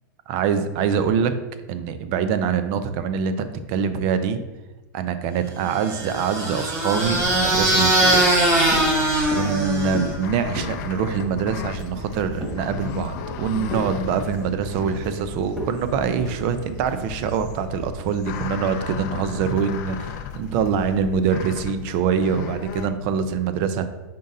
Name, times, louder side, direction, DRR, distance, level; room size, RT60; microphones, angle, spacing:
voice 1, 0.3-1.3 1.7-4.4 4.9-8.2 9.3-20.1 20.3-23.9, right 7 dB, 45° right, 10 dB, 0.4 m, -24 dB
sound 1, 5.7-10.3, right 1 dB, 25° right, 1.2 m, -21 dB
sound 2, 6.9-22.9, left 7 dB, 50° left, 0.5 m, -35 dB
sound 3, 8.0-8.4 8.7-8.9 9.3-9.6 9.9-10.2 10.5-10.8 11.2-11.4 11.8-12.6 13.0-13.4 13.7-13.9 14.2-15.2 15.6-15.8 16.2-16.4 16.8-17.1, equal, 5° right, 1.4 m, -33 dB
5.2 x 4.0 x 2.6 m, 1.1 s
hypercardioid pair, 125°, 11 cm